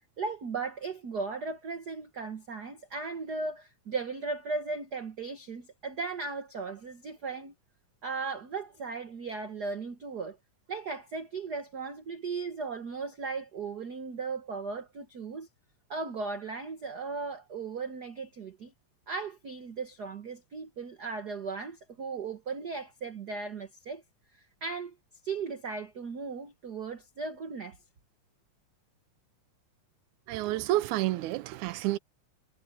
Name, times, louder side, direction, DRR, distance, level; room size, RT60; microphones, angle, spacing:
voice 1, 0.2-7.5 8.0-10.4 10.7-15.5 15.9-18.7 19.1-24.0 24.6-24.9 25.2-27.8, right 4 dB, 50° right, 1.2 m, -37 dB
voice 2, 30.3-32.0, right 16 dB, 90° right, 2.1 m, -29 dB
omnidirectional pair, 3.4 m